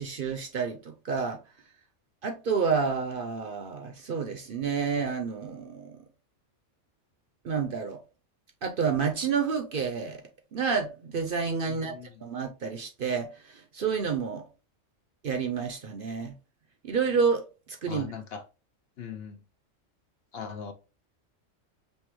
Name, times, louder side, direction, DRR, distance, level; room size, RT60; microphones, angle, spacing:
voice 1, 0.0-1.4 2.2-6.0 7.4-8.0 8.6-10.2 10.5-12.0 12.2-14.4 15.2-16.3 16.8-18.1, right 5 dB, 55° right, 0.7 m, -29 dB
voice 2, 11.7-12.1 17.9-18.4 19.0-19.4 20.3-20.7, left 6 dB, 65° left, 0.7 m, -40 dB
5.4 x 2.8 x 3.0 m
omnidirectional pair, 1.3 m